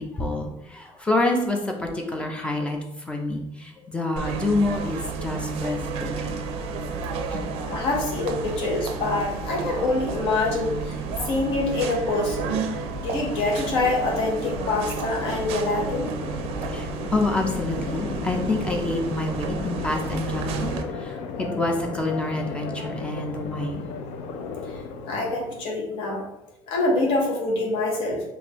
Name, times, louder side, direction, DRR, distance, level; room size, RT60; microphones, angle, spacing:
voice 1, 0.0-6.5 7.3-7.5 16.7-23.9, left 2 dB, 10° left, 2 dB, 0.5 m, -27 dB
sound 1, 4.2-20.8, right 5 dB, 80° right, 0.4 m, -32 dB
sound 2, 5.8-25.7, left 4 dB, 90° left, 0.4 m, -37 dB
voice 2, 7.7-11.0 11.3-12.6 13.0-16.1 24.7-24.8 25.1-26.2 26.7-28.2, left 2 dB, 65° left, -1 dB, 1.0 m, -25 dB
5.0 x 2.6 x 2.9 m, 0.88 s
cardioid pair, 175°, 10 cm